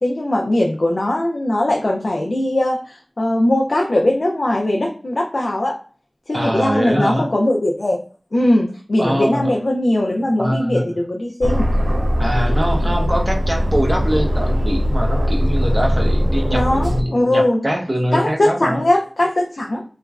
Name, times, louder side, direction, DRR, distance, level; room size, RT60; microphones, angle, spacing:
voice 1, 0.0-5.8 6.3-8.0 8.3-11.7 16.5-17.6 18.1-19.8, left 1 dB, 75° left, 0 dB, 0.4 m, -19 dB
voice 2, 6.3-7.3 9.0-9.5 10.4-11.0 12.2-18.8, equal, 30° right, 1 dB, 0.7 m, -23 dB
Aircraft, 11.4-17.0, equal, 60° right, 0.3 m, -19 dB
2.9 x 2.4 x 2.2 m, 0.40 s
wide cardioid pair, 50°, 0 cm